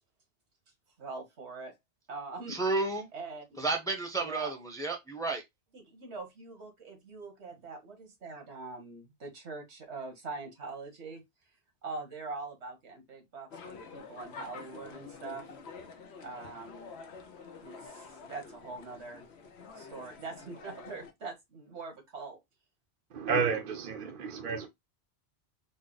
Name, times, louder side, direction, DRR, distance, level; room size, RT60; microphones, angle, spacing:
voice 1, 1.0-1.7 2.1-2.6 3.1-3.4 4.2-4.5 5.7-11.2 11.8-15.5 16.2-16.9 17.6-19.2 19.7-22.4, right 3 dB, 90° right, 1.6 m, -43 dB
voice 2, 2.5-3.1 3.6-5.4, right 3 dB, 5° left, 0.8 m, -31 dB
sound 1, 13.5-21.1, left 4 dB, 75° left, 1.0 m, -48 dB
voice 3, 23.1-24.7, right 5 dB, 55° right, 0.7 m, -31 dB
4.0 x 2.1 x 3.9 m
omnidirectional pair, 1.1 m